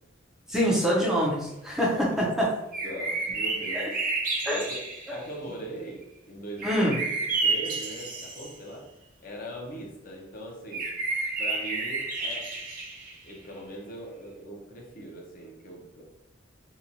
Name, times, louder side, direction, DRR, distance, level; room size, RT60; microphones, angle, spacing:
voice 1, 0.5-2.5 3.7-3.9 4.4-4.6 5.1-5.2 6.6-7.0, equal, 5° right, -5 dB, 0.5 m, -25 dB
sound 1, 2.7-5.2 6.6-8.5 10.7-13.3, right 3 dB, 45° right, 0.6 m, -30 dB
voice 2, 2.8-4.0 4.5-4.8 5.1-6.9 7.4-8.9 9.2-10.9 11.4-12.5 13.2-16.0, right 1 dB, 45° left, -1 dB, 0.6 m, -40 dB
2.8 x 2.2 x 2.5 m, 0.91 s
head